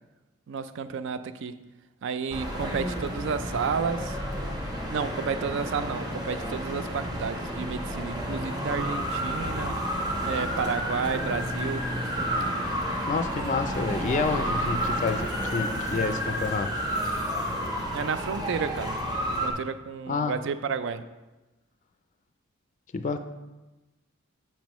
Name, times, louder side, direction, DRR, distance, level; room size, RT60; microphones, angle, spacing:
voice 1, 0.5-1.6 2.0-4.2 4.9-9.8 10.3-11.9 17.9-19.0 19.4-21.0, right 6 dB, 60° right, 12 dB, 0.4 m, -31 dB
sound 1, 2.3-19.5, equal, 20° right, 1.1 m, -31 dB
sound 2, 6.9-12.6, equal, 75° right, 1.7 m, -48 dB
voice 2, 13.1-16.7 17.2-17.4 20.1-20.3 22.9-23.2, left 4 dB, 35° left, 8 dB, 0.4 m, -29 dB
7.2 x 7.2 x 3.0 m, 1.1 s
head